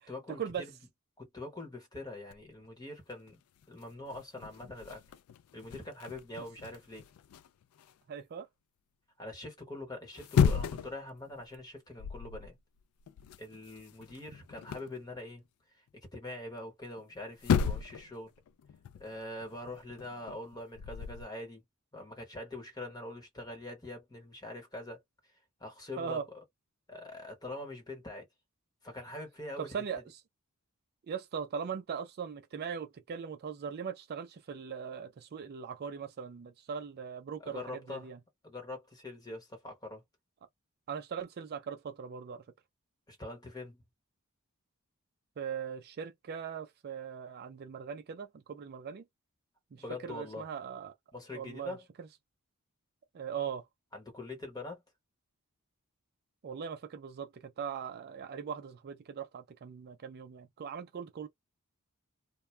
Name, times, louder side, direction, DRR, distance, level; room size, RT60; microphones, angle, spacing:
voice 1, 0.1-0.7 1.2-3.4 3.7-5.0 5.5-7.1 9.2-12.6 13.4-15.4 16.1-18.3 19.0-21.6 21.9-25.0 25.6-26.2 26.9-28.3 28.8-29.8 37.4-38.1 38.4-40.0 43.1-43.8 49.7-50.5 51.1-51.9 53.9-54.8, left 2 dB, 20° left, 1.1 m, -43 dB
sound 1, 2.3-2.7 3.3-3.4 3.6-7.9 10.0-11.0 11.4-11.6 12.0-12.5 12.8-15.0 17.0-17.1 17.4-18.1 18.4-21.2, left 7 dB, 70° left, 0.3 m, -34 dB
voice 2, 8.1-8.5 26.0-26.2 29.6-30.0 31.1-38.2 40.9-42.4 45.4-49.0 49.7-50.9 51.3-51.8 53.1-53.6 56.4-61.3, right 7 dB, 45° right, 0.4 m, -40 dB
2.2 x 2.1 x 3.2 m
head